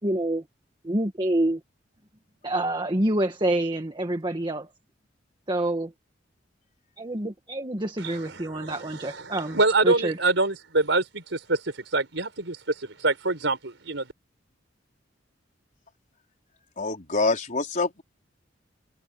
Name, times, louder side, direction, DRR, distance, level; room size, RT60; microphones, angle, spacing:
voice 1, 0.0-0.4 0.8-1.6 2.4-4.7 5.5-5.9 7.0-10.2, right 1 dB, 25° right, 1.7 m, -27 dB
voice 2, 8.0-14.1, right 2 dB, 75° right, 5.3 m, -26 dB
voice 3, 16.8-18.0, left 3 dB, 45° left, 4.5 m, -26 dB
head